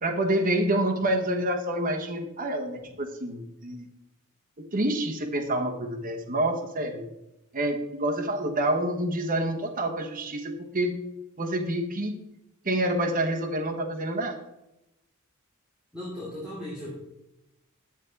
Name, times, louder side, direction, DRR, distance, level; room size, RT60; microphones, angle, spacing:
voice 1, 0.0-3.8 4.6-7.0 7.5-11.0 11.4-12.2 12.6-14.4, right 1 dB, 40° right, 2 dB, 1.1 m, -27 dB
voice 2, 15.9-16.9, left 1 dB, 5° right, -9 dB, 2.6 m, -36 dB
10.0 x 7.5 x 4.0 m, 0.92 s
head